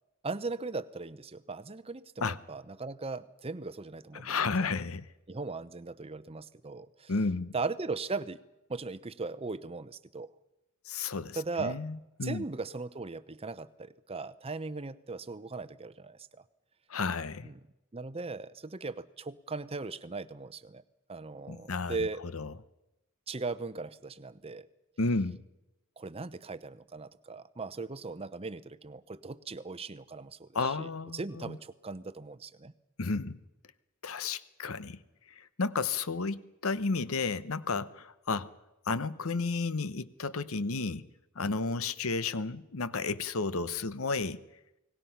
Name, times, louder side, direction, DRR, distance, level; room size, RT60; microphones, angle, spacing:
voice 1, 0.2-4.7 5.3-7.1 7.5-8.4 8.7-10.3 11.3-11.8 12.2-16.4 17.4-17.6 17.9-20.8 21.1-22.2 23.3-24.7 26.0-32.7, right 3 dB, 25° right, 15 dB, 0.7 m, -38 dB
voice 2, 4.1-5.1 7.1-7.5 10.8-12.4 16.9-17.5 21.5-22.0 22.3-22.5 25.0-25.4 30.5-31.6 33.0-33.4 34.0-35.0 35.4-38.5 38.9-41.1 41.4-44.4, left 4 dB, 70° left, 15 dB, 0.9 m, -32 dB
29.5 x 19.5 x 5.7 m, 0.94 s
head